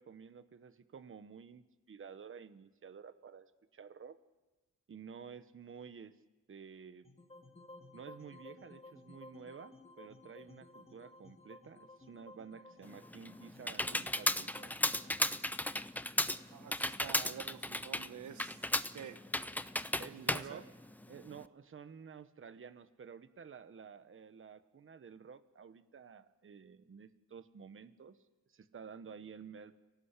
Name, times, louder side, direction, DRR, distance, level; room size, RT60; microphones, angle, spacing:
voice 1, 0.0-4.2 4.9-6.2 6.5-7.1 7.9-14.7 20.0-20.7 21.1-28.2 28.5-29.7, right 6 dB, 45° right, 12 dB, 1.2 m, -52 dB
sound 1, 7.0-17.2, left 2 dB, 20° left, 3.4 m, -57 dB
Computer keyboard, 12.8-21.4, left 1 dB, 5° left, 0.8 m, -35 dB
voice 2, 16.5-18.6 18.9-19.2 20.1-20.6, right 9 dB, 90° right, 10 dB, 1.3 m, -48 dB
25.5 x 18.0 x 8.4 m, 1.2 s
cardioid pair, 85°, 29 cm